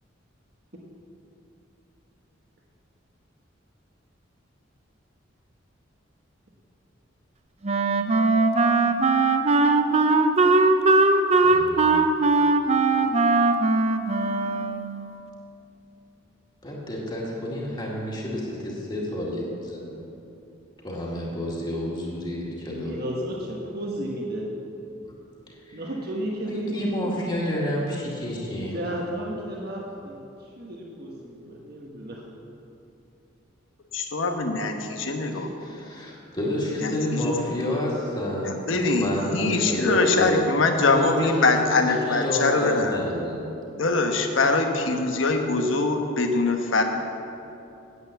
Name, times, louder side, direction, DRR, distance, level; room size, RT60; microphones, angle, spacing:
Wind instrument woodwind instrument, 7.6-15.0, right 3 dB, 35° right, 0.6 m, -20 dB
voice 1, 11.4-12.0 16.6-20.0 20.8-23.0 25.7-25.8 26.5-28.7 35.3-38.7 38.9-40.5 40.7-43.5, left 1 dB, 25° left, -4 dB, 2.2 m, -30 dB
voice 2, 22.8-24.5 25.7-27.1 28.6-32.2, equal, 55° right, -2 dB, 1.3 m, -33 dB
voice 3, 33.9-35.5 36.8-37.3 37.7-37.8 38.7-43.0 43.8-46.8, left 3 dB, 75° left, 4 dB, 1.2 m, -23 dB
9.5 x 8.1 x 8.0 m, 2.8 s
head